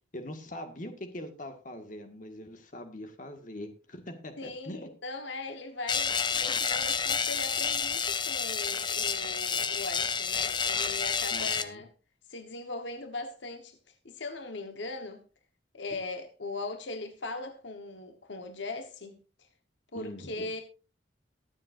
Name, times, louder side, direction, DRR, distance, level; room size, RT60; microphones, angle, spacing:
voice 1, 0.1-4.9 11.3-11.8 19.9-20.5, left 1 dB, 45° left, 1.7 m, -42 dB
voice 2, 4.4-11.9 12.3-13.8 14.0-15.2 15.7-19.2 19.9-20.6, left 3 dB, 75° left, 1.2 m, -39 dB
sound 1, 5.9-11.6, left 6 dB, 25° left, 0.6 m, -29 dB
22.5 x 7.5 x 2.6 m
head